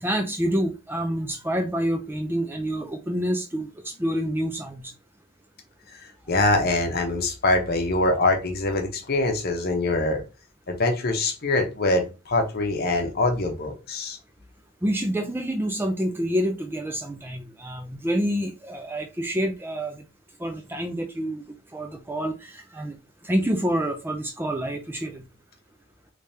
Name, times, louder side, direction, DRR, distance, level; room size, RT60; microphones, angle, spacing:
voice 1, 0.0-4.9 14.8-20.0 20.4-21.4 21.7-23.0 23.2-25.2, equal, 10° right, 0.4 m, -27 dB
voice 2, 5.9-10.2 10.7-14.2, left 2 dB, 45° left, 0.8 m, -24 dB
3.4 x 3.3 x 2.7 m
head